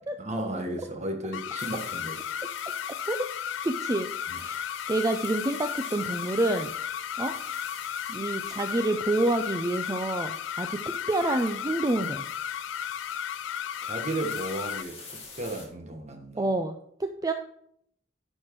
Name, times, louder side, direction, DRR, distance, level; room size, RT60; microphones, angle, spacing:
voice 1, 0.2-2.2 4.3-4.4 13.8-16.5, right 1 dB, 35° right, 4 dB, 1.4 m, -34 dB
sound 1, 1.3-14.8, left 9 dB, 70° left, 0.3 m, -34 dB
sound 2, 1.6-15.7, left 4 dB, 35° left, 2.2 m, -46 dB
voice 2, 3.6-4.1 4.4-4.6 4.9-6.7 7.2-7.3 8.1-10.8 11.1-12.2 16.4-17.3, right 2 dB, 20° right, 6 dB, 0.4 m, -28 dB
11.0 x 4.5 x 4.6 m, 0.69 s
head